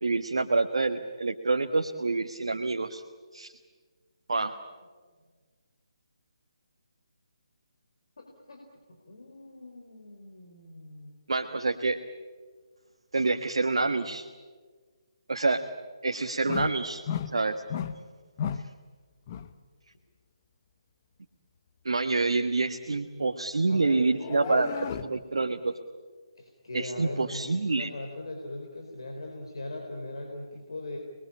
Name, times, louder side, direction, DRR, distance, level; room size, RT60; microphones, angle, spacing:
voice 1, 0.0-3.0 3.3-3.5 4.3-4.6 11.3-12.0 13.1-14.3 15.3-15.7 16.0-17.0 17.3-17.6 21.8-24.7 25.0-25.7 26.7-27.9, right 3 dB, 65° right, 5 dB, 1.4 m, -27 dB
voice 2, 8.2-8.6 8.9-11.1 23.7-24.6 26.4-31.0, left 2 dB, 60° left, 1 dB, 4.3 m, -40 dB
sound 1, 16.5-16.8 17.1-17.4 17.7-18.0 18.4-18.7 19.3-19.5 24.1-25.2, left 8 dB, 30° left, 1.1 m, -33 dB
29.0 x 21.5 x 8.7 m, 1.5 s
figure-of-eight pair, 145°, 3 cm